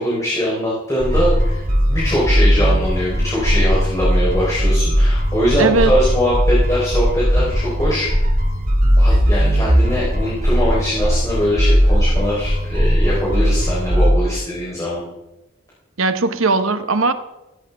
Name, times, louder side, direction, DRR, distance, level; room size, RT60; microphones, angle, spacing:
voice 1, 0.0-8.1 9.0-15.0, equal, 15° left, -7 dB, 3.9 m, -22 dB
sound 1, 1.0-14.1, equal, 35° right, 2.3 m, -17 dB
voice 2, 5.6-5.9 16.0-17.1, right 3 dB, 70° right, 10 dB, 1.0 m, -18 dB
16.5 x 14.5 x 3.5 m, 0.98 s
head